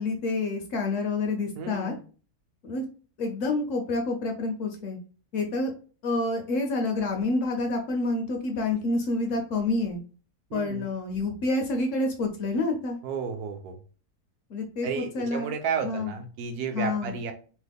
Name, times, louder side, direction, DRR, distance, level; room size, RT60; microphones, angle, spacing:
voice 1, 0.0-1.9 2.6-2.8 3.2-5.0 5.3-5.7 6.0-10.0 10.5-13.0 14.5-15.5 15.8-16.1 16.7-17.1, left 2 dB, 65° left, 3 dB, 0.8 m, -28 dB
voice 2, 1.6-2.0 10.5-10.8 13.0-13.8 14.8-17.3, right 6 dB, 75° right, 6 dB, 1.1 m, -32 dB
3.0 x 2.1 x 3.4 m, 0.37 s
omnidirectional pair, 1.7 m